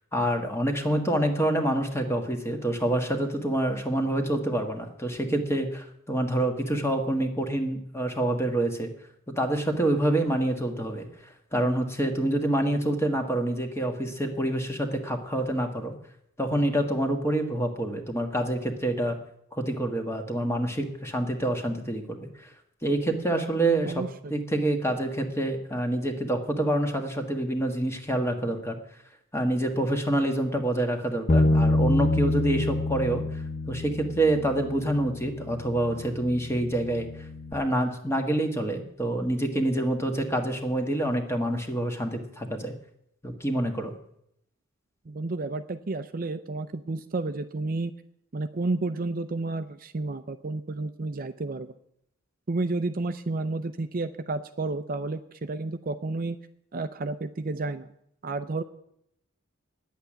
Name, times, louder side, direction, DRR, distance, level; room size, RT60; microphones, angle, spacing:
voice 1, 0.1-8.9 9.3-15.9 16.4-19.2 19.5-22.5 22.8-24.0 24.3-28.8 29.3-33.4 33.7-37.3 37.5-42.7 43.2-43.9, right 1 dB, 10° left, 4 dB, 1.5 m, -27 dB
voice 2, 23.8-24.3 45.1-47.9 48.3-51.7 52.5-56.4 56.7-57.9 58.2-58.6, right 2 dB, 40° right, 9 dB, 0.5 m, -31 dB
Bass guitar, 31.3-37.5, left 2 dB, 35° left, 0.7 m, -27 dB
10.5 x 8.2 x 9.7 m, 0.74 s
head